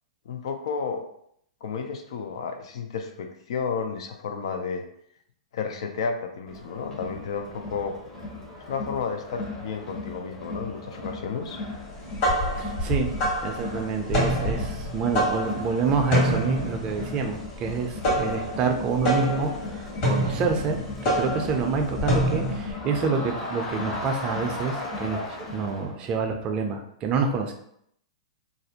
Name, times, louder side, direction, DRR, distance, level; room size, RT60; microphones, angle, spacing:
voice 1, 0.3-1.0 1.6-4.8 5.5-7.9 8.7-11.6, left 5 dB, 65° left, 5 dB, 0.4 m, -32 dB
Crowd, 6.5-25.9, left 2 dB, 25° left, 0.7 m, -37 dB
sound 1, 11.9-22.7, equal, 45° left, 1.2 m, -27 dB
voice 2, 12.6-13.1 13.4-27.5, right 5 dB, 30° right, 4 dB, 0.4 m, -27 dB
2.5 x 2.0 x 2.8 m, 0.70 s
hypercardioid pair, 115°, 3 cm